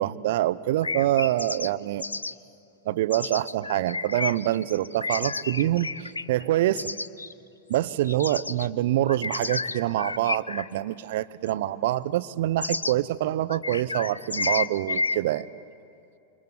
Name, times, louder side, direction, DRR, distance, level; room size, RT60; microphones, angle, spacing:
voice 1, 0.0-2.1 2.9-6.9 7.7-15.5, right 14 dB, 55° right, 16 dB, 0.8 m, -26 dB
sound 1, 0.8-1.7 2.0-2.3 3.1-7.3 7.7-8.7 9.1-10.8 11.5-11.6 12.6-12.9 13.5-15.2, left 3 dB, 80° left, 0.5 m, -31 dB
27.5 x 26.0 x 7.9 m, 2.6 s
figure-of-eight pair, 90°, 0 cm